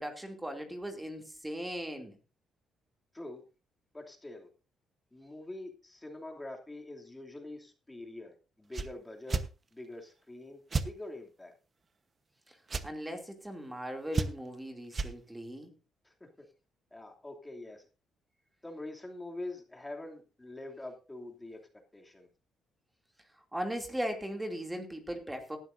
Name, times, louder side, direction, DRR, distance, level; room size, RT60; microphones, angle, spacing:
voice 1, 0.0-2.2 12.5-12.6 12.8-15.7 23.5-25.6, equal, 10° right, 2.7 m, -38 dB
voice 2, 3.9-4.5 5.1-9.4 9.7-11.5 16.0-16.3 16.9-17.8 18.6-21.6 21.9-22.3, left 2 dB, 15° left, 2.8 m, -45 dB
sound 1, 8.7-8.9 9.3-9.5 10.7-10.9 12.7-12.9 14.1-14.5 14.9-15.1, right 4 dB, 35° right, 1.1 m, -31 dB
18.0 x 12.0 x 2.7 m
cardioid pair, 90°, 0 cm